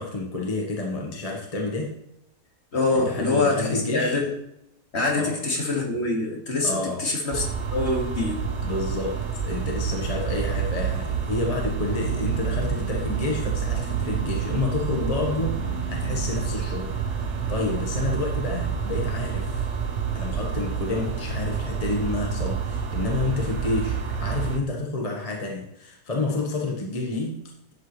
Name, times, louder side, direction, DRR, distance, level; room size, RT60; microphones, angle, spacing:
voice 1, 0.0-2.0 2.9-4.2 5.1-5.4 6.6-7.2 8.6-19.7 20.1-27.7, left 3 dB, 25° left, 0 dB, 1.2 m, -29 dB
voice 2, 2.7-4.3 4.9-8.4, left 3 dB, 45° left, -1 dB, 2.2 m, -25 dB
sound 1, 7.3-24.6, right 7 dB, 50° right, 1.3 m, -28 dB
11.0 x 8.0 x 3.2 m, 0.82 s
omnidirectional pair, 1.6 m